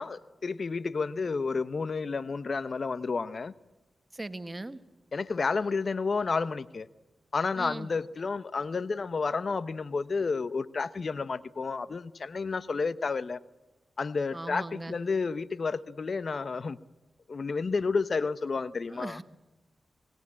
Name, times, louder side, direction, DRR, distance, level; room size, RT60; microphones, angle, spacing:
voice 1, 0.0-3.5 5.1-6.9 7.3-13.4 14.0-16.8 17.3-19.2, left 4 dB, 55° left, 16 dB, 0.9 m, -31 dB
voice 2, 4.1-4.8 7.6-7.9 14.3-14.9 18.9-19.2, right 2 dB, 25° right, 11 dB, 1.7 m, -39 dB
25.0 x 20.0 x 8.7 m, 1.1 s
cardioid pair, 50°, 0 cm